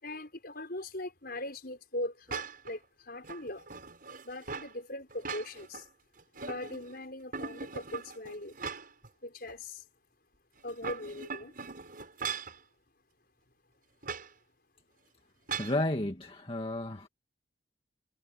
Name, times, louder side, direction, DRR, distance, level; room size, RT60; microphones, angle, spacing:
voice 1, 0.0-2.8 3.1-3.6 4.2-5.8 6.5-8.5 9.2-9.8 10.6-11.5, left 1 dB, 55° left, 5.9 m, -40 dB
sound 1, 2.3-2.7 3.2-4.7 5.1-5.8 6.2-6.9 7.3-9.1 9.5-9.6 10.6-12.6 14.0-14.3 15.5-15.8, right 5 dB, 50° right, 5.8 m, -40 dB
voice 2, 15.6-17.1, left 1 dB, 30° left, 1.9 m, -32 dB
head